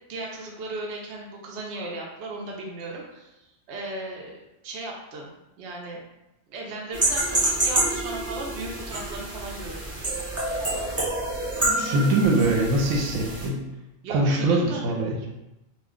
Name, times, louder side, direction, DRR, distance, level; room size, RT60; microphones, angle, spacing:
voice 1, 0.1-5.3 5.6-6.0 6.5-10.0 14.0-14.8, right 2 dB, 65° right, -2 dB, 0.7 m, -36 dB
sound 1, 6.9-13.5, right 2 dB, 20° right, 0.4 m, -27 dB
voice 2, 11.7-13.6 14.1-15.2, right 2 dB, 85° right, 1 dB, 1.0 m, -22 dB
2.4 x 2.2 x 3.6 m, 0.95 s
omnidirectional pair, 1.4 m